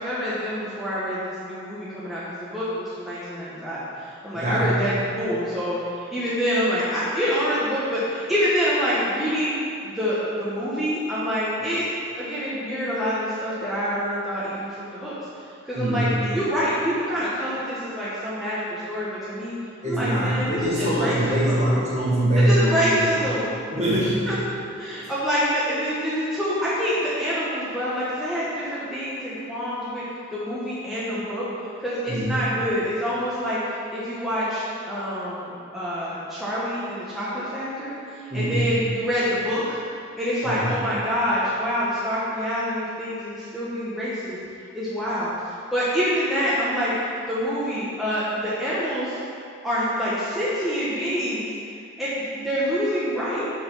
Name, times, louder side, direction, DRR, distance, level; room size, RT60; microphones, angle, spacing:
voice 1, 0.0-11.8 12.2-15.1 15.6-19.5 19.8-21.6 22.3-23.5 24.3-24.4 24.8-30.0 30.3-31.5 31.8-39.8 40.2-44.4 44.7-45.3 45.7-49.2 49.6-51.5 52.0-53.4, equal, ahead, -11 dB, 1.1 m, -26 dB
voice 2, 4.3-4.8 15.7-16.2 19.8-23.1 23.7-24.3 32.1-32.3 38.3-38.7 40.4-40.7, right 1 dB, 35° right, -7 dB, 1.7 m, -23 dB
7.6 x 4.6 x 5.4 m, 2.4 s
head